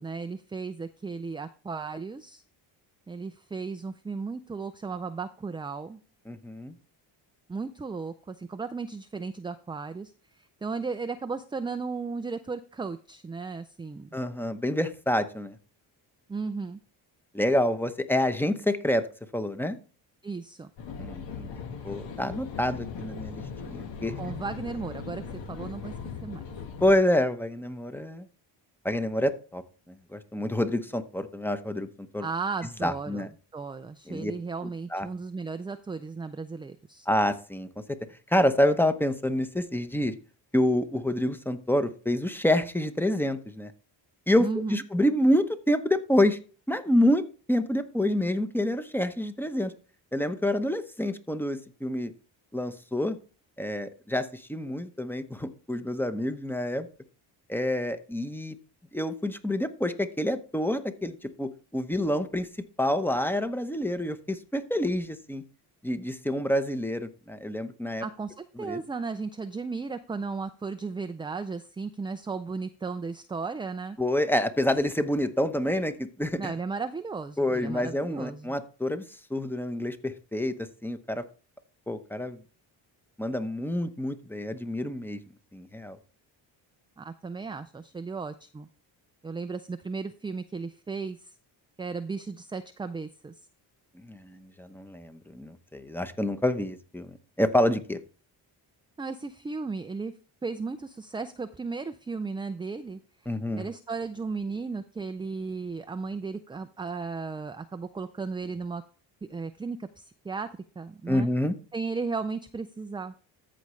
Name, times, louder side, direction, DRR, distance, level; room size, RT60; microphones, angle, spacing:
voice 1, 0.0-2.4 3.1-6.0 7.5-14.1 16.3-16.8 20.2-20.7 24.2-25.2 25.5-25.9 26.2-26.4 32.2-37.1 44.4-44.8 68.0-74.0 76.4-78.5 87.0-88.7 89.2-91.3 91.8-93.3 99.0-100.1 100.4-108.8 109.3-110.5 110.8-111.3 111.7-113.1, right 4 dB, 10° right, 9 dB, 0.3 m, -35 dB
voice 2, 6.3-6.7 14.1-15.6 17.3-19.1 19.3-19.8 21.0-21.5 21.8-24.1 26.8-28.3 28.8-29.6 29.9-32.3 32.8-33.3 34.1-34.3 34.9-35.1 37.1-37.7 38.3-40.1 40.5-43.7 44.3-46.4 46.7-47.2 47.5-49.7 50.1-52.1 52.5-53.2 53.6-56.9 57.5-58.6 58.9-62.5 62.8-65.4 65.8-68.0 68.6-68.8 74.0-76.5 77.4-79.0 79.3-80.5 80.8-81.2 81.9-82.4 83.2-85.2 85.5-86.0 94.0-98.0 103.3-103.7 111.1-111.5, left 1 dB, 5° left, 10 dB, 0.8 m, -27 dB
sound 1, 20.8-26.9, left 6 dB, 70° left, 1.5 m, -39 dB
14.0 x 5.0 x 3.2 m, 0.39 s
cardioid pair, 85°, 46 cm